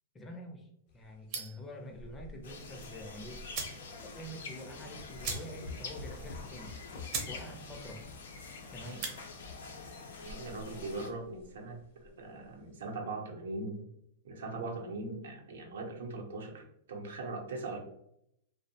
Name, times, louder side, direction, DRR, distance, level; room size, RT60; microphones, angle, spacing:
voice 1, 0.1-3.5 3.8-6.7 7.2-8.1 8.7-9.1, equal, 10° left, 1 dB, 0.4 m, -47 dB
sound 1, 0.9-12.9, left 2 dB, 50° left, 0.7 m, -51 dB
sound 2, 1.3-1.7 3.0-3.1 3.5-3.8 4.2-4.3 4.5-4.7 5.2-5.8 6.1-6.2 6.7-6.8 7.1-7.4 7.7-8.1 8.8-9.2, right 4 dB, 35° right, 0.5 m, -38 dB
sound 3, 2.4-11.1, left 4 dB, 80° left, 0.6 m, -46 dB
voice 2, 10.2-13.8 14.2-17.8, right 2 dB, 80° right, 2 dB, 0.6 m, -40 dB
2.6 x 2.0 x 2.7 m, 0.77 s
supercardioid pair, 155°, 0 cm